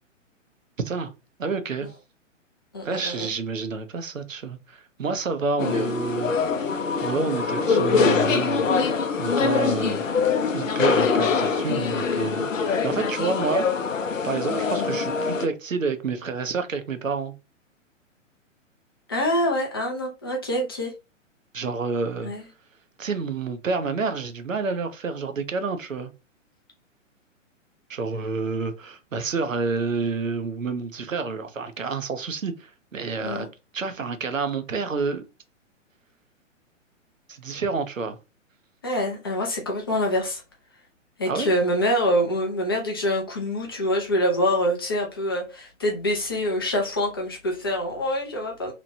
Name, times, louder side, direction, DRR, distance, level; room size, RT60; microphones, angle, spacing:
voice 1, 1.4-1.9 2.8-6.4 7.0-8.7 9.2-10.0 10.5-13.7 14.2-17.3 21.5-22.3 23.0-26.1 27.9-33.5 33.7-35.2 37.3-38.2 41.3-41.5, right 4 dB, 85° right, 0.5 m, -29 dB
voice 2, 2.7-3.3 19.1-20.9 22.2-22.4 33.2-33.5 38.8-40.4 41.2-48.7, equal, 20° left, 0.3 m, -25 dB
sound 1, 5.6-15.5, left 5 dB, 80° left, 0.5 m, -23 dB
2.9 x 2.1 x 2.6 m
figure-of-eight pair, 120°, 38 cm